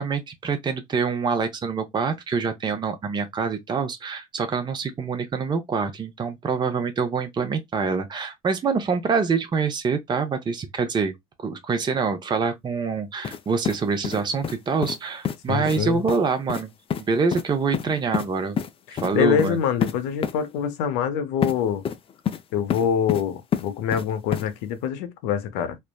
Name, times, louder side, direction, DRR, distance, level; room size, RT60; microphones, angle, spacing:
voice 1, 0.0-11.1 11.4-16.7 17.1-18.6 18.9-19.6, right 5 dB, 25° right, 0.6 m, -25 dB
sound 1, 13.2-13.4 13.6-14.6 14.8-15.0 15.2-15.4 15.6-15.8 16.1-16.2 16.5-16.6 16.9-17.0 17.3-17.4 17.7-18.3 18.6-18.7 19.0-19.1 19.4-19.5 19.8-19.9 20.2-20.3 21.4-21.5 21.8-22.4 22.7-23.2 23.5-24.0 24.3-24.4, left 8 dB, 35° left, 0.4 m, -27 dB
voice 2, 15.5-16.0 18.9-21.8 22.5-25.8, left 8 dB, 75° left, 0.6 m, -25 dB
3.2 x 2.0 x 2.2 m
hypercardioid pair, 70°, 17 cm